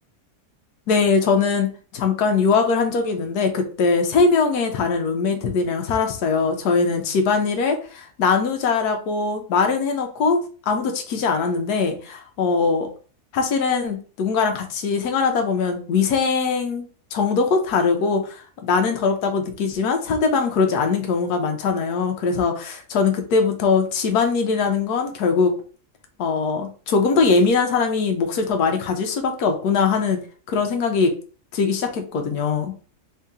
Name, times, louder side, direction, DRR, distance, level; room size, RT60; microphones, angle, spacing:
voice 1, 0.9-10.4 10.7-12.9 13.3-25.5 26.2-30.2 30.5-31.1 31.5-32.7, left 5 dB, 80° left, 5 dB, 1.3 m, -21 dB
3.7 x 2.8 x 3.6 m, 0.39 s
omnidirectional pair, 1.7 m